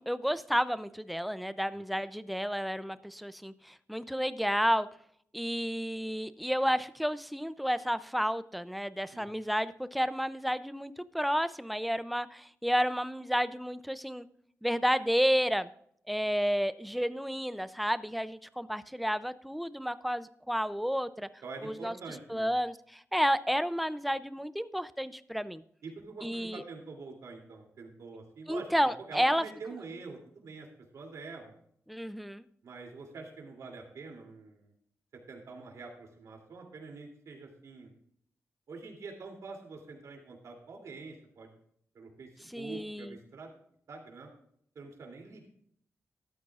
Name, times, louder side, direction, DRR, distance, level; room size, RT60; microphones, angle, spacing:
voice 1, 0.0-4.9 5.3-14.3 14.6-15.7 16.1-21.3 21.6-21.9 22.3-25.6 26.2-26.6 28.5-29.4 31.9-32.4 42.5-43.2, equal, ahead, 14 dB, 0.4 m, -31 dB
voice 2, 21.4-22.5 25.8-30.7 30.9-31.5 32.6-34.7 35.3-37.9 38.7-41.5 41.9-43.6 43.9-44.3 44.7-45.5, right 4 dB, 85° right, 1 dB, 2.8 m, -46 dB
13.0 x 12.5 x 2.4 m, 0.66 s
wide cardioid pair, 150°, 5 cm